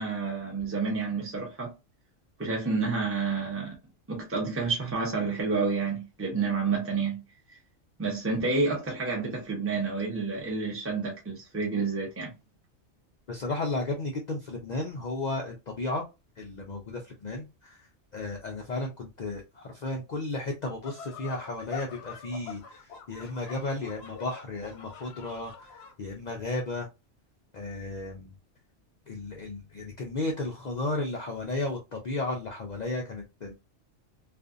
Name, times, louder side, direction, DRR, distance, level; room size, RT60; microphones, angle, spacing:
voice 1, 0.0-1.7 2.4-3.7 4.1-7.2 7.5-7.6 8.0-12.3, right 4 dB, 15° right, 0.7 m, -29 dB
voice 2, 13.3-16.1 16.4-26.9 27.5-28.3 29.1-33.5, left 2 dB, 85° left, 0.3 m, -34 dB
sound 1, 20.8-25.9, left 7 dB, 65° left, 0.8 m, -45 dB
2.5 x 2.5 x 2.4 m
omnidirectional pair, 1.3 m